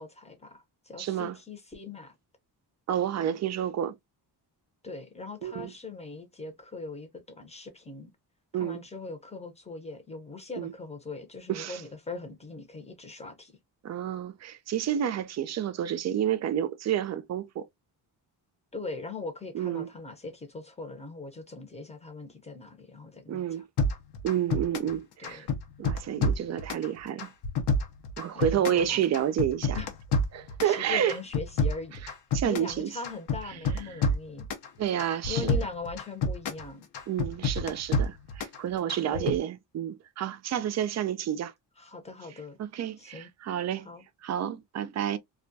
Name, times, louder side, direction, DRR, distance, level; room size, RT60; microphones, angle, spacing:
voice 1, 0.0-2.1 3.2-3.4 4.8-7.1 7.4-8.1 8.6-13.5 18.7-23.6 25.2-25.5 28.3-29.0 29.7-29.9 30.6-32.0 32.4-34.5 35.3-36.9 39.0-39.3 41.8-42.6 43.0-43.3 43.8-44.0, left 3 dB, 15° left, 0.7 m, -40 dB
voice 2, 1.0-1.4 2.9-4.0 5.4-5.7 8.5-8.8 10.6-10.7 11.5-11.8 13.8-17.7 19.5-19.9 23.3-23.7 24.2-25.5 25.8-27.3 28.2-29.8 30.3-31.2 32.3-32.9 33.5-33.6 33.9-34.1 34.8-35.6 37.1-41.5 42.6-43.9 44.2-45.2, right 10 dB, 40° right, 0.4 m, -30 dB
sound 1, 23.8-25.0 25.2-26.9 27.2-28.9 29.1-30.8 31.1-32.8 33.0-34.7 35.0-36.6 36.9-38.6 38.9-39.4, left 2 dB, 65° left, 0.8 m, -28 dB
2.3 x 2.2 x 2.5 m
cardioid pair, 100°, 42 cm